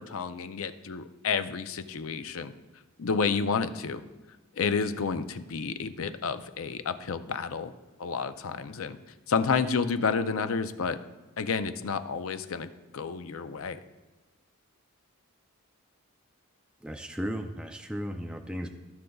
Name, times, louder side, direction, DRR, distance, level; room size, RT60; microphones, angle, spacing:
voice 1, 0.0-2.5 3.0-4.0 4.6-7.7 8.0-9.0 9.3-11.0 11.4-12.7 12.9-13.8, left 5 dB, 70° left, 11 dB, 0.5 m, -30 dB
voice 2, 16.8-18.7, equal, 5° right, 4 dB, 0.4 m, -35 dB
15.5 x 6.5 x 2.3 m, 1.2 s
head